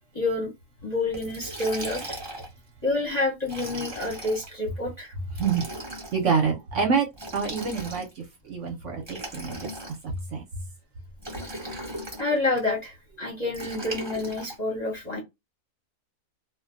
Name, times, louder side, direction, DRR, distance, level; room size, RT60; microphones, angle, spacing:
voice 1, 0.1-0.5 0.8-2.0 2.8-5.1 12.2-15.2, left 2 dB, 35° left, 0.7 m, -28 dB
Liquid, 1.1-2.6 3.4-4.5 5.3-6.2 7.1-8.2 9.0-10.2 11.2-12.3 13.5-14.5, right 1 dB, 20° right, 0.8 m, -37 dB
voice 2, 6.1-7.1 7.3-9.6 10.3-10.4, right 6 dB, 60° right, 0.9 m, -26 dB
2.5 x 2.1 x 2.4 m
omnidirectional pair, 1.6 m